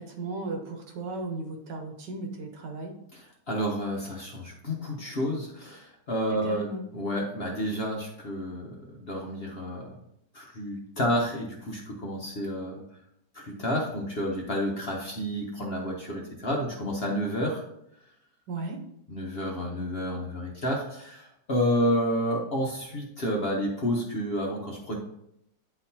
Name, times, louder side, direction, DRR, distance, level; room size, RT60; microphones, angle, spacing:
voice 1, 0.0-2.9 6.4-6.9 18.5-18.8, right 2 dB, 75° right, 3 dB, 1.6 m, -35 dB
voice 2, 3.1-9.9 10.3-12.8 13.3-17.6 19.1-25.0, equal, 45° left, -2 dB, 0.9 m, -30 dB
9.6 x 4.0 x 2.8 m, 0.76 s
omnidirectional pair, 1.9 m